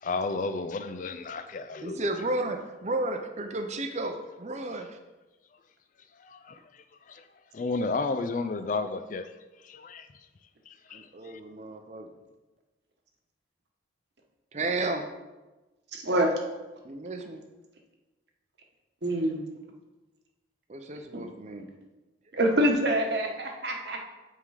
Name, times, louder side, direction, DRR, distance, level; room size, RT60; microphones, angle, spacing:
voice 1, 0.0-2.1 6.2-6.6 7.1-7.2 7.5-9.3 9.6-10.1 10.9-11.1, left 3 dB, 40° left, 10 dB, 0.3 m, -32 dB
voice 2, 1.8-4.9 10.9-12.1 14.5-15.1 16.8-17.4 20.7-21.7, right 2 dB, 35° right, 6 dB, 0.6 m, -33 dB
voice 3, 15.9-16.3 19.0-19.4 21.1-21.2 22.3-24.1, right 1 dB, 60° right, 2 dB, 1.1 m, -26 dB
8.2 x 3.7 x 4.8 m, 1.1 s
head